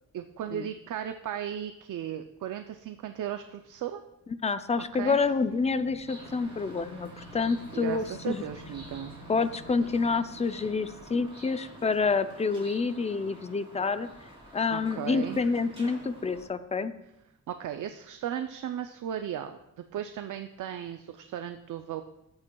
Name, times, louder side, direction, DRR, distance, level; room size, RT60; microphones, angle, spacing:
voice 1, 0.1-4.0 4.8-5.2 7.7-9.1 14.7-15.4 17.5-22.0, right 10 dB, 75° right, 8 dB, 0.5 m, -36 dB
voice 2, 4.4-8.4 9.3-14.1 14.5-16.9, left 4 dB, 20° left, 12 dB, 0.4 m, -28 dB
sound 1, 4.7-11.0, equal, 45° left, 3.9 m, -50 dB
sound 2, 6.1-16.4, right 1 dB, 15° right, 3.0 m, -49 dB
14.0 x 8.8 x 2.3 m, 0.86 s
wide cardioid pair, 140°, 31 cm